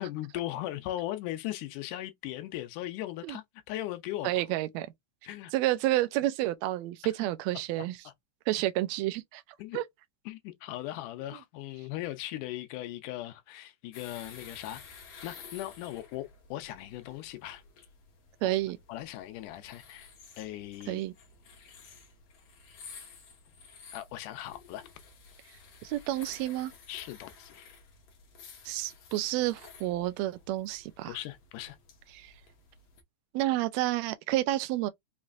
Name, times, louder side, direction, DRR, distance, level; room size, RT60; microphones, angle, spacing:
voice 1, 0.0-4.3 5.2-5.5 7.8-7.9 9.6-9.8 10.3-14.8 15.2-17.6 18.4-18.5 18.9-20.1 20.4-21.0 23.9-24.9 26.9-27.6 31.1-31.8, left 14 dB, 85° left, 2.2 m, -38 dB
voice 2, 4.2-4.9 5.5-8.0 8.5-9.4 9.7-9.8 18.4-18.8 20.9-21.1 25.8-26.7 28.6-31.2 32.1-32.3 33.3-34.9, right 15 dB, 80° right, 1.6 m, -30 dB
sound 1, 13.9-33.0, left 5 dB, 60° left, 2.2 m, -53 dB
5.6 x 3.1 x 2.5 m
omnidirectional pair, 3.6 m